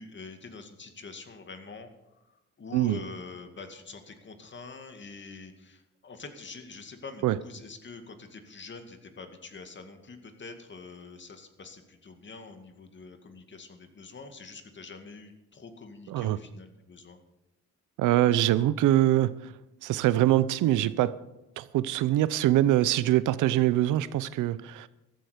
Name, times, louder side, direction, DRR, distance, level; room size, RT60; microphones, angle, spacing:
voice 1, 0.0-1.9 2.6-17.2, left 4 dB, 40° left, 2.2 m, -45 dB
voice 2, 18.0-19.3 19.8-21.1 21.6-24.9, right 14 dB, 90° right, 0.7 m, -24 dB
14.5 x 13.0 x 5.1 m
cardioid pair, 90°, 30 cm